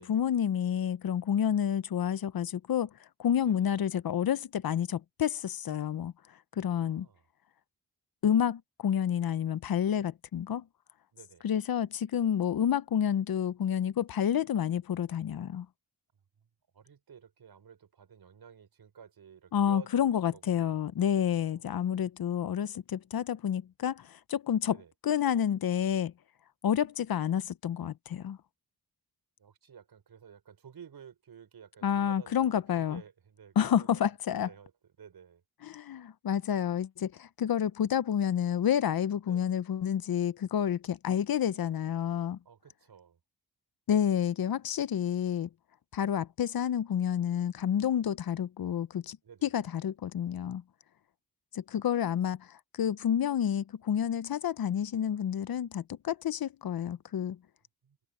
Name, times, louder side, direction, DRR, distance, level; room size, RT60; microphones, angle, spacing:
voice 1, 0.0-2.9 3.2-6.1 6.6-7.1 8.2-10.6 11.4-15.7 19.5-24.8 25.0-26.1 26.6-28.4 31.8-33.0 33.6-34.5 35.6-42.4 43.9-45.5 45.9-49.2 49.4-50.6 51.5-57.4, left 9 dB, 65° left, 0.8 m, -29 dB
voice 2, 6.7-7.2 11.1-11.5 16.7-21.8 24.6-24.9 29.4-34.7 35.0-35.4 39.3-39.5 42.4-43.2 49.2-49.5 57.8-58.0, right 7 dB, 70° right, 5.8 m, -53 dB
open air
wide cardioid pair, 100°, 39 cm